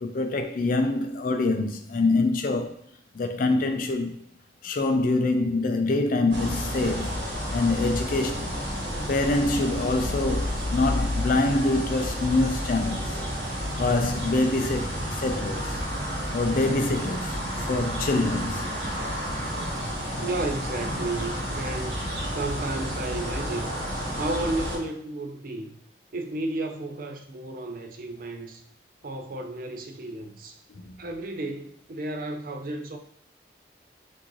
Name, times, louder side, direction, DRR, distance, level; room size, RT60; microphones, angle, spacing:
voice 1, 0.0-2.8 3.1-4.2 4.6-7.2 7.5-8.6 9.1-13.2 13.7-15.8 16.3-18.7 30.9-31.0, left 2 dB, 50° left, 0.4 m, -25 dB
sound 1, 6.3-24.8, equal, 75° right, 1.5 m, -30 dB
voice 2, 20.2-22.0 22.3-23.8 24.2-25.8 26.1-28.6 29.0-30.6 31.0-33.0, right 2 dB, 55° right, 0.5 m, -33 dB
6.0 x 2.6 x 3.0 m
head